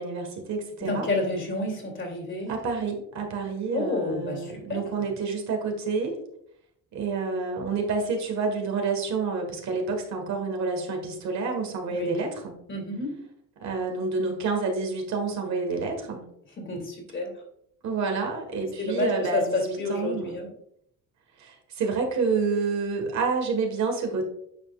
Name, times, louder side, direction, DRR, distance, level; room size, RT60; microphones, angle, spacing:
voice 1, 0.0-1.1 2.5-6.2 6.9-12.5 13.6-16.3 17.8-20.4 21.4-24.3, right 4 dB, 65° right, 3 dB, 1.7 m, -28 dB
voice 2, 0.8-2.6 3.7-4.8 11.9-12.2 12.7-13.2 16.6-17.3 18.6-20.5, left 2 dB, 40° left, 2 dB, 2.5 m, -30 dB
8.7 x 5.1 x 2.5 m, 0.71 s
cardioid pair, 110°, 30 cm